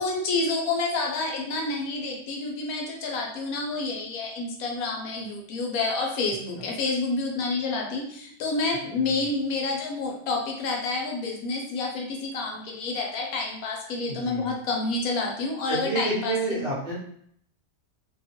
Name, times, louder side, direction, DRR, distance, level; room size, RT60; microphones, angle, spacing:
voice 1, 0.0-16.7, left 3 dB, 80° left, 0 dB, 1.1 m, -29 dB
voice 2, 14.0-14.5 15.7-17.0, right 2 dB, 50° right, -6 dB, 0.8 m, -29 dB
2.8 x 2.2 x 2.8 m, 0.66 s
omnidirectional pair, 1.5 m